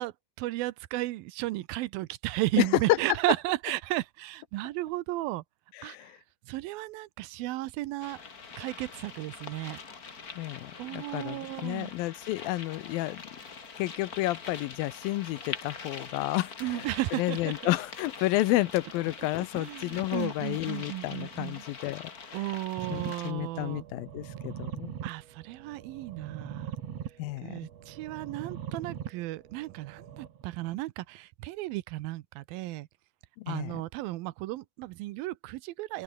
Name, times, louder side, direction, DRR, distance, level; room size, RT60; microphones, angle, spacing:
voice 1, 0.0-5.4 5.8-6.2 6.4-8.2 8.6-9.8 10.8-11.9 16.6-17.7 19.2-19.3 19.5-21.6 22.3-23.9 25.0-26.7 27.4-32.9 33.5-36.0, right 18 dB, 80° right, 2.5 m, -34 dB
sound 1, 8.0-23.3, left 5 dB, 30° left, 1.9 m, -44 dB
voice 2, 10.4-11.4 11.6-13.2 13.8-16.8 17.2-22.0 22.9-24.9 27.2-27.5 33.4-33.7, left 17 dB, 80° left, 2.4 m, -31 dB
sound 2, 22.8-30.7, right 9 dB, 50° right, 2.4 m, -42 dB
open air
omnidirectional pair, 4.3 m